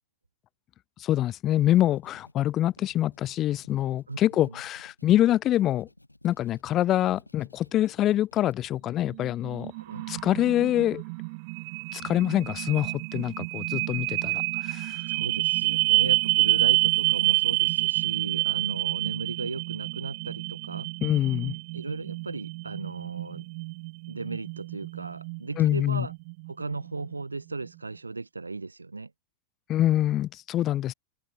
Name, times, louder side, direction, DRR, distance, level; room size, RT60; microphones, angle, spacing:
voice 1, 1.0-5.9 6.2-9.7 10.1-11.0 11.9-15.0 21.0-21.6 25.6-26.1 29.7-30.9, left 13 dB, 30° left, 0.5 m, -25 dB
sound 1, 1.6-8.6, left 1 dB, 85° left, 6.8 m, -56 dB
voice 2, 4.1-4.6 9.7-10.1 15.1-20.9 21.7-23.5 24.1-26.1 26.5-29.1, right 3 dB, 80° right, 2.6 m, -36 dB
sound 2, 9.1-27.1, right 30 dB, 45° right, 0.5 m, -28 dB
figure-of-eight pair, 90°, 0 cm